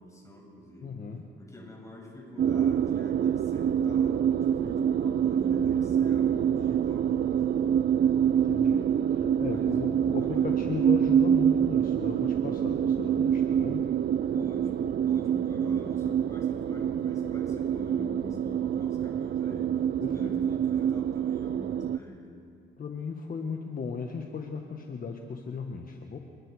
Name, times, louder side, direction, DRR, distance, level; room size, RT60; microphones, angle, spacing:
voice 1, 0.0-1.1 1.4-7.8 9.5-10.9 14.3-22.3, left 1 dB, 15° left, -1 dB, 7.4 m, -46 dB
voice 2, 0.8-1.2 8.5-13.9 20.0-20.4 22.8-26.2, left 5 dB, 45° left, 3 dB, 1.5 m, -36 dB
sound 1, 2.4-22.0, right 9 dB, 55° right, 0.6 m, -26 dB
29.0 x 20.0 x 5.0 m, 2.6 s
cardioid pair, 90°, 20 cm